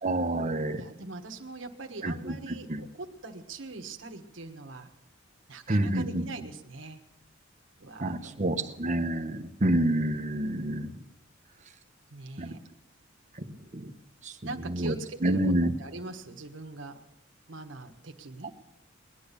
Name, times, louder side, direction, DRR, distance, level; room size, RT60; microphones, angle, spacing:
voice 1, 0.0-0.8 2.0-2.8 5.7-6.2 8.0-10.9 12.4-12.5 13.7-13.9 14.2-14.3 14.7-14.9 15.2-15.7, right 1 dB, 40° right, 7 dB, 1.0 m, -28 dB
voice 2, 0.7-4.9 5.5-7.0 7.8-8.7 9.2-9.9 12.1-12.6 14.4-15.4 15.8-17.0 17.5-18.5, right 3 dB, 70° right, 5 dB, 1.4 m, -42 dB
20.0 x 10.5 x 6.9 m, 0.87 s
head